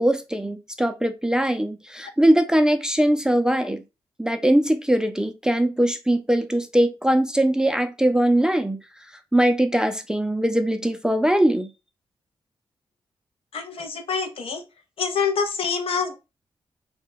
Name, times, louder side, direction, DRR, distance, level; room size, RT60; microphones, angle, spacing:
voice 1, 0.0-3.8 4.2-8.8 9.3-11.7, right 1 dB, 5° right, 0.3 m, -21 dB
voice 2, 13.5-14.6 15.0-16.2, left 5 dB, 65° left, 0.5 m, -26 dB
2.2 x 2.1 x 3.1 m
supercardioid pair, 50°, 10 cm